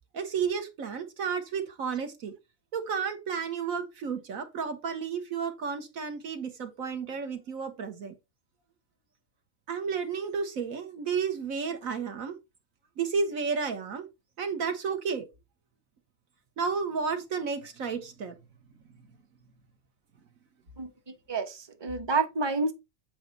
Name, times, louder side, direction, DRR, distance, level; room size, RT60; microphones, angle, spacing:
voice 1, 0.1-2.3 2.7-8.1 9.7-12.4 13.0-14.1 14.4-15.3 16.6-18.3, right 5 dB, 70° right, 1.7 m, -32 dB
voice 2, 20.8-22.7, right 3 dB, 20° right, 0.9 m, -29 dB
8.1 x 4.5 x 3.9 m
omnidirectional pair, 1.5 m